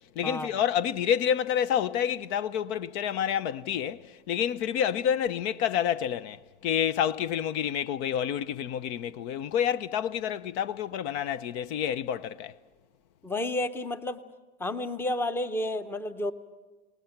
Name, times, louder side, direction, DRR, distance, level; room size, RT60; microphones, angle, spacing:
voice 1, 0.2-4.0 4.3-6.4 6.6-12.5, left 9 dB, 65° left, 0.8 m, -28 dB
voice 2, 13.2-14.2 14.6-16.3, left 1 dB, 5° left, 0.7 m, -31 dB
28.0 x 19.0 x 5.9 m
supercardioid pair, 120°, 36 cm